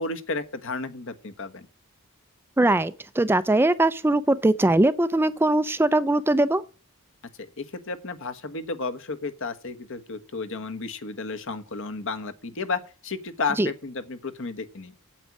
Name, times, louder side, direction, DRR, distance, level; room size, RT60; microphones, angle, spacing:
voice 1, 0.0-1.7 7.6-14.9, left 3 dB, 60° left, 1.2 m, -32 dB
voice 2, 2.6-6.6 13.6-13.7, right 1 dB, 10° right, 0.4 m, -21 dB
8.7 x 8.4 x 6.1 m
head